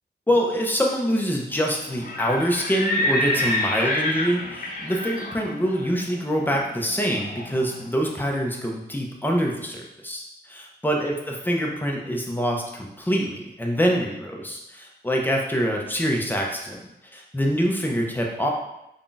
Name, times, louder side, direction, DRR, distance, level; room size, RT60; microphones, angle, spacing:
voice 1, 0.3-16.8 17.1-18.5, equal, 10° left, 0 dB, 0.6 m, -25 dB
Livestock farm animals working animals, 1.9-7.7, left 1 dB, 45° left, 0.8 m, -28 dB
3.7 x 2.3 x 3.8 m, 0.87 s
wide cardioid pair, 105°, 19 cm